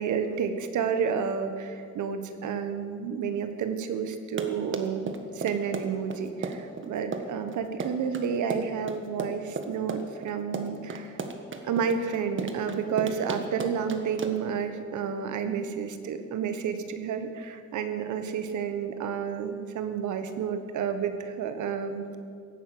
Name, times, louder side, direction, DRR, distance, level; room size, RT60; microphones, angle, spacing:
voice 1, 0.0-11.2 11.6-22.2, right 6 dB, 75° right, 9 dB, 1.4 m, -30 dB
Run, 4.1-14.6, right 4 dB, 40° right, 1.5 m, -35 dB
16.5 x 9.2 x 7.8 m, 2.2 s
cardioid pair, 90°, 30 cm